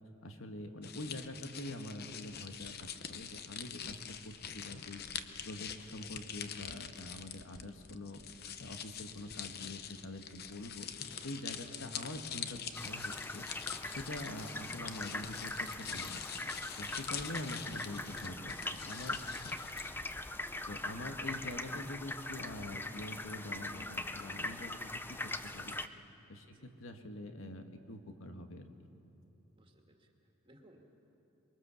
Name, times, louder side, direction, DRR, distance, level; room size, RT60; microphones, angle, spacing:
voice 1, 0.2-5.0 5.5-8.2 8.6-12.6 12.8-13.5 13.8-16.2 16.8-19.2 19.5-19.6 20.7-25.8 26.3-28.7, left 1 dB, 80° left, 6 dB, 1.6 m, -45 dB
sound 1, 0.8-19.9, left 8 dB, 50° left, 0.8 m, -45 dB
sound 2, 12.7-25.9, left 2 dB, 10° left, 0.5 m, -41 dB
voice 2, 29.5-31.1, right 1 dB, 25° right, 1 dB, 2.1 m, -63 dB
24.5 x 22.5 x 7.0 m, 2.9 s
head